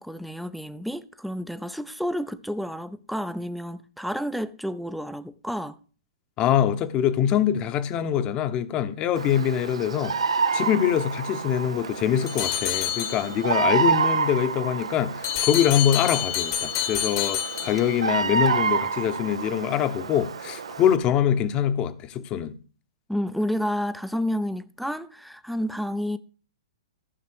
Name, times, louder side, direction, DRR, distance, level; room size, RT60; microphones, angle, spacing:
voice 1, 0.0-5.8 23.1-26.2, equal, ahead, 0.5 m, -30 dB
voice 2, 6.4-10.1 10.5-22.5, left 9 dB, 30° left, 0.9 m, -24 dB
Bird vocalization bird call bird song, 9.2-21.0, right 5 dB, 75° right, 0.7 m, -28 dB
sound 1, 12.3-13.6 15.2-18.2, left 11 dB, 50° left, 1.2 m, -28 dB
14.0 x 5.9 x 4.6 m
hypercardioid pair, 120°, 3 cm